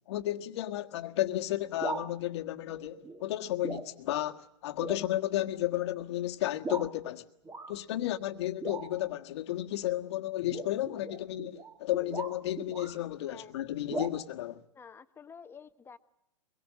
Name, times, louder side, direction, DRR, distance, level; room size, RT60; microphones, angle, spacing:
voice 1, 0.0-7.2 7.7-14.6, left 14 dB, 55° left, 1.6 m, -33 dB
sound 1, 1.7-2.1 3.0-3.3 3.6-3.9 4.3-4.4 4.8-5.1 5.8-5.9 6.6-6.9 7.5-7.7 8.6-9.1 10.4-13.0 13.9-14.1, right 3 dB, 15° right, 1.9 m, -39 dB
voice 2, 13.2-13.5 14.7-16.0, left 6 dB, 15° left, 1.2 m, -50 dB
24.0 x 22.0 x 7.4 m
hypercardioid pair, 115°, 16 cm